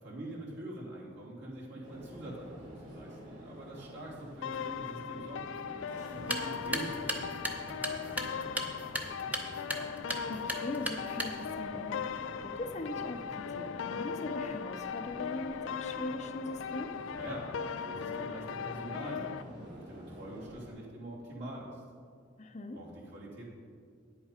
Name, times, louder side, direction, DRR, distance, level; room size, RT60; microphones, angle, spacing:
voice 1, 0.0-8.6 8.9-9.6 17.1-21.8 22.7-23.5, right 1 dB, 65° right, -5 dB, 2.7 m, -45 dB
sound 1, 1.8-20.7, equal, 40° right, 2.8 m, -49 dB
sound 2, 4.4-19.4, left 7 dB, 75° left, 0.4 m, -39 dB
sound 3, 6.1-11.6, right 1 dB, 10° right, 0.8 m, -38 dB
voice 2, 10.3-17.0 22.4-22.8, left 2 dB, 40° left, 6 dB, 0.6 m, -41 dB
10.0 x 8.1 x 5.0 m, 2.2 s
head